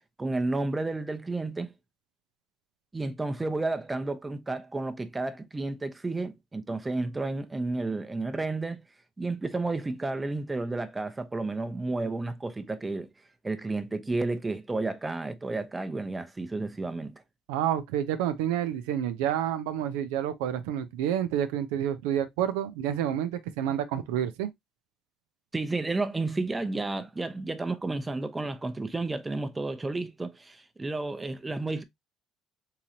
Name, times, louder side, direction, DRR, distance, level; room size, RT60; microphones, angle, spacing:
voice 1, 0.2-1.7 2.9-8.8 9.2-13.1 13.4-17.2 25.5-31.8, right 2 dB, 20° right, 0.6 m, -31 dB
voice 2, 17.5-24.5, right 10 dB, 85° right, 0.4 m, -29 dB
3.8 x 3.0 x 2.7 m
supercardioid pair, 80°, 0 cm